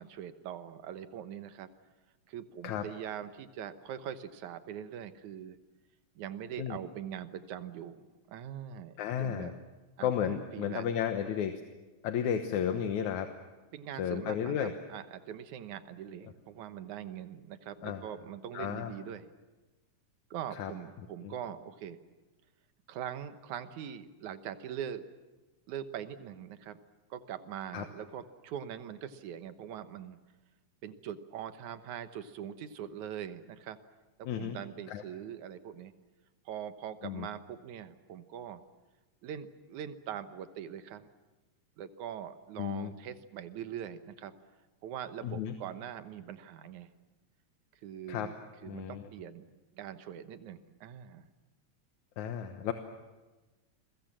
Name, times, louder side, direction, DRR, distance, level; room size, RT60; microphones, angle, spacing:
voice 1, 0.0-1.7 2.3-5.6 6.2-8.0 8.3-9.6 10.0-11.0 13.7-19.3 20.3-22.0 22.9-25.1 25.7-26.8 27.1-30.2 30.8-33.8 34.2-35.9 36.5-38.6 39.2-41.1 41.8-44.3 44.8-46.9 47.8-49.5 49.8-51.3, right 9 dB, 85° right, 10 dB, 2.6 m, -42 dB
voice 2, 9.0-9.5 10.0-11.6 12.0-13.3 14.0-14.7 17.8-18.0 18.5-18.9 20.6-20.7 21.2-21.3 27.7-27.8 34.2-34.6 34.9-35.0 37.0-37.3 42.6-42.9 45.2-45.5 48.1-48.3 48.6-49.0 52.2-52.7, left 9 dB, 85° left, 6 dB, 2.6 m, -33 dB
29.5 x 22.0 x 7.5 m, 1.2 s
omnidirectional pair, 3.3 m